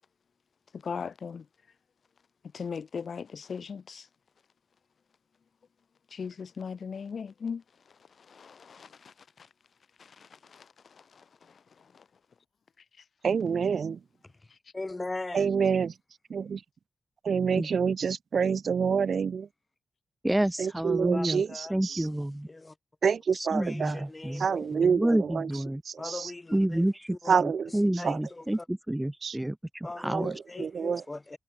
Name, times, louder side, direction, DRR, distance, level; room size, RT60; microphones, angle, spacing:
voice 1, 0.8-1.4 2.5-4.0 6.1-7.6 8.3-9.1 10.2-10.6, left 6 dB, 60° left, 1.7 m, -38 dB
voice 2, 13.2-14.0 15.3-15.9 16.3-16.6 17.2-19.5 20.6-22.0 23.0-24.0 24.4-25.5 25.9-26.3 27.3-27.7 28.0-28.2 29.2-29.4 30.1-30.3 30.6-31.0, right 6 dB, 65° right, 0.9 m, -27 dB
voice 3, 14.7-15.5 21.1-22.7 23.6-24.7 26.0-27.4 27.7-28.7 29.8-31.4, left 2 dB, 20° left, 3.7 m, -40 dB
voice 4, 20.2-21.4 21.7-22.5 23.3-24.5 24.7-25.8 26.5-30.3, right 1 dB, 10° right, 0.7 m, -29 dB
wide cardioid pair, 120°, 0 cm